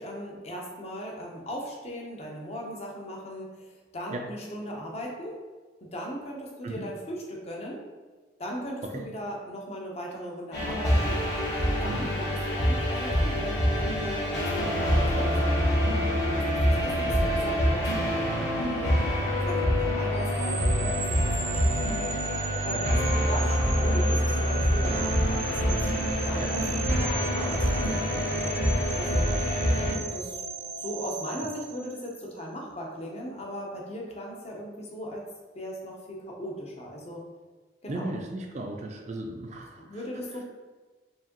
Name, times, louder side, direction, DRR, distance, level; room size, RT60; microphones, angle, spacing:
voice 1, 0.0-5.4 5.8-7.8 8.4-11.2 11.6-18.9 19.4-22.1 22.6-25.9 26.3-29.3 30.1-30.4 30.8-35.2 35.5-37.2 37.8-38.1 39.8-40.4, equal, 35° left, -1 dB, 0.7 m, -38 dB
sound 1, 10.5-29.9, equal, 60° left, 1.2 m, -26 dB
sound 2, 20.1-32.3, right 3 dB, 85° right, 0.7 m, -36 dB
voice 2, 37.9-40.0, right 1 dB, 35° right, 2 dB, 0.3 m, -36 dB
4.7 x 2.8 x 2.9 m, 1.3 s
head